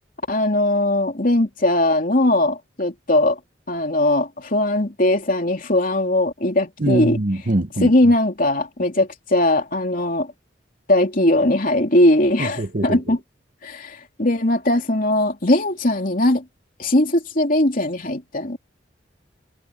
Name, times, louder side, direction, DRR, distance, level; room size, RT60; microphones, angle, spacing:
voice 1, 0.3-3.4 3.7-7.2 7.8-10.3 10.9-13.2 13.6-16.4 16.8-18.6, left 1 dB, 50° left, 3.1 m, -19 dB
voice 2, 6.8-7.9 12.6-13.0, right 1 dB, 45° right, 1.0 m, -22 dB
head